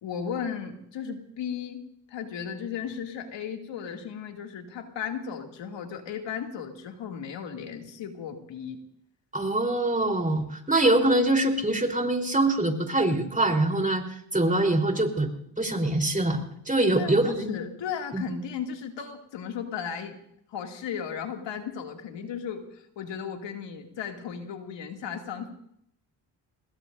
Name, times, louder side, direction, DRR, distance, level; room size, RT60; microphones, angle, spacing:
voice 1, 0.0-1.8 2.1-8.8 16.9-20.2 20.5-25.5, left 7 dB, 80° left, 3 dB, 2.5 m, -35 dB
voice 2, 9.3-14.1 14.3-17.6 18.1-18.2, right 2 dB, 20° right, 2 dB, 3.8 m, -24 dB
25.5 x 21.0 x 2.6 m, 0.72 s
cardioid pair, 75°, 43 cm